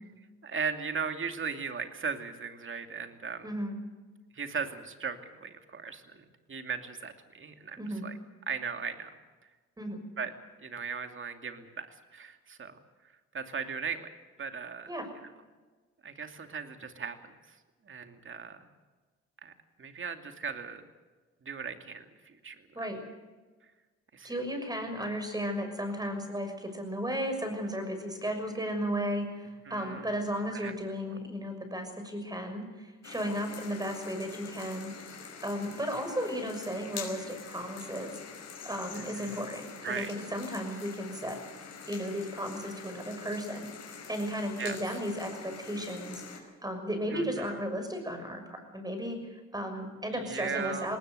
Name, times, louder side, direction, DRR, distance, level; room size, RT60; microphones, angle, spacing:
voice 1, 0.4-3.5 4.3-8.1 8.5-9.1 10.2-10.3 10.6-12.8 13.3-14.1 14.4-14.9 16.0-17.6 17.9-18.6 19.4-19.5 19.8-20.8 21.4-22.9 24.1-24.3 29.7-30.1 30.5-30.7 38.9-39.4 39.8-40.1 44.6-44.8 47.1-47.5 50.1-50.9, right 5 dB, 40° right, 7 dB, 2.7 m, -38 dB
voice 2, 3.4-3.8 7.8-8.0 9.8-10.0 14.9-15.1 22.7-23.0 24.2-38.2 38.6-41.4 41.9-43.7 44.1-51.0, equal, 15° right, 6 dB, 6.3 m, -35 dB
sound 1, 33.0-46.4, left 6 dB, 60° left, 5.4 m, -45 dB
19.5 x 19.5 x 8.2 m, 1.3 s
cardioid pair, 90°, 30 cm